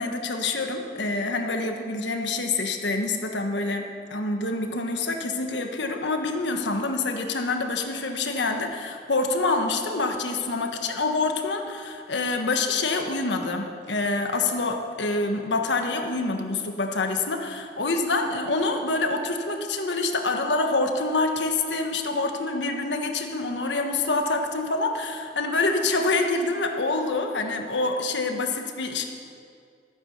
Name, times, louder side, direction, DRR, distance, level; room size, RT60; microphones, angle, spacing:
voice 1, 0.0-29.1, left 3 dB, 85° left, 4 dB, 1.4 m, -26 dB
14.5 x 9.6 x 6.7 m, 2.3 s
head